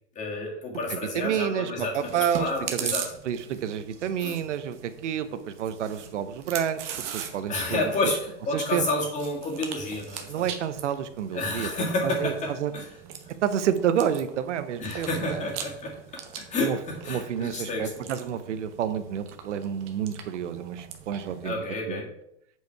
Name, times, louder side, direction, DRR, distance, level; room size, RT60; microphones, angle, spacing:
voice 1, 0.2-3.1 4.2-4.4 7.5-10.5 11.3-12.9 14.8-16.0 16.4-17.9 21.4-22.1, left 2 dB, 20° left, -1 dB, 2.0 m, -30 dB
voice 2, 0.9-2.9 3.2-6.8 7.1-7.9 8.5-8.8 10.3-12.7 13.4-15.5 16.6-16.8 17.1-21.6 21.9-22.0, right 9 dB, 85° right, 12 dB, 0.9 m, -29 dB
Chewing mastication, 1.9-21.5, right 9 dB, 40° right, 1.2 m, -41 dB
8.2 x 4.8 x 4.6 m, 0.75 s
supercardioid pair, 150°, 35 cm